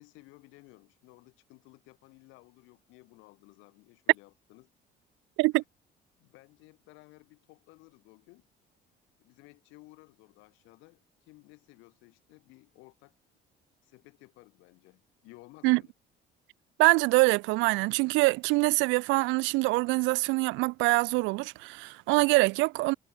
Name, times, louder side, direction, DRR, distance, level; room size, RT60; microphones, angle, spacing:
voice 1, 0.0-4.7 5.5-5.6 6.2-8.5 9.2-13.2 13.8-15.9, left 23 dB, 85° left, 3.4 m, -56 dB
voice 2, 16.8-22.9, right 24 dB, 85° right, 0.6 m, -24 dB
supercardioid pair, 90°, 19 cm